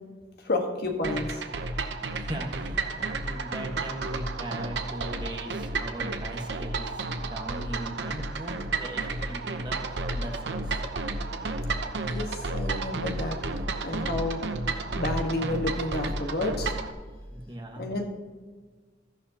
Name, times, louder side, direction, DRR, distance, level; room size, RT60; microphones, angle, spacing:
voice 1, 0.4-1.4 12.1-13.4 13.8-14.4 14.9-16.8 17.8-18.0, left 2 dB, 60° left, 3 dB, 1.5 m, -30 dB
sound 1, 1.0-16.9, right 3 dB, 70° right, 0.8 m, -32 dB
voice 2, 2.2-10.8 17.3-17.9, right 1 dB, 25° right, 1 dB, 1.5 m, -39 dB
14.0 x 11.0 x 2.9 m, 1.5 s
head